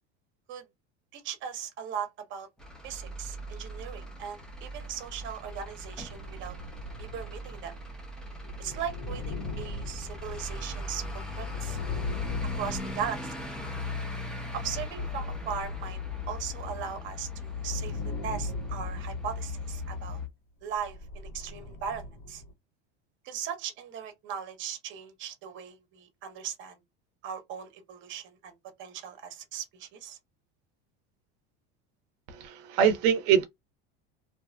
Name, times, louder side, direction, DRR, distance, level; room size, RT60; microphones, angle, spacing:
voice 1, 1.1-2.5 2.8-6.6 7.0-7.7 8.6-11.0 11.4-11.8 12.5-13.3 14.5-16.0 16.3-20.2 20.6-22.4 23.2-26.8 27.2-28.5 28.8-30.2, right 8 dB, 40° right, 0.8 m, -38 dB
Truck / Idling, 2.6-20.3, left 3 dB, ahead, 0.5 m, -38 dB
sound 1, 6.0-13.9 14.5-16.9 17.5-20.0 20.7-22.5, left 1 dB, 75° left, 1.4 m, -41 dB
voice 2, 32.3-33.5, right 8 dB, 80° right, 0.5 m, -24 dB
2.7 x 2.3 x 2.2 m
cardioid pair, 150°, 31 cm